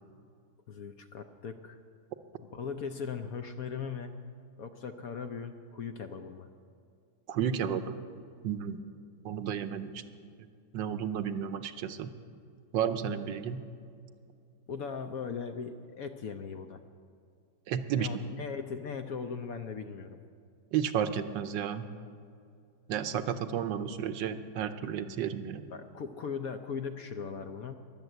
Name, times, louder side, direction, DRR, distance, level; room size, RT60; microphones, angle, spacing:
voice 1, 0.7-1.8 2.4-4.2 4.6-6.5 14.7-16.8 17.9-20.2 25.7-27.7, left 6 dB, 60° left, 7 dB, 1.0 m, -39 dB
voice 2, 7.3-8.0 8.4-8.8 9.2-10.5 10.7-12.1 12.7-13.6 17.7-18.1 20.7-21.9 22.9-25.6, right 8 dB, 80° right, 10 dB, 1.4 m, -32 dB
22.0 x 7.5 x 8.0 m, 2.4 s
omnidirectional pair, 2.0 m